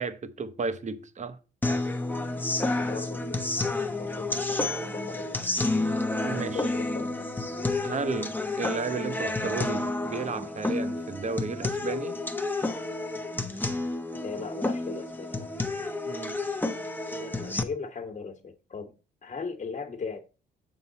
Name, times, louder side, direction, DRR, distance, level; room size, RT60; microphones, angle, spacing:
voice 1, 0.0-1.4 6.2-6.6 7.8-12.2 16.1-16.4, right 4 dB, 35° right, 0.8 m, -33 dB
sound 1, 1.6-17.6, left 2 dB, 10° left, 0.8 m, -30 dB
voice 2, 2.5-5.4 6.5-7.3 14.2-15.5 17.2-20.2, left 5 dB, 35° left, 1.3 m, -38 dB
6.9 x 5.8 x 4.0 m
cardioid pair, 90°, 20 cm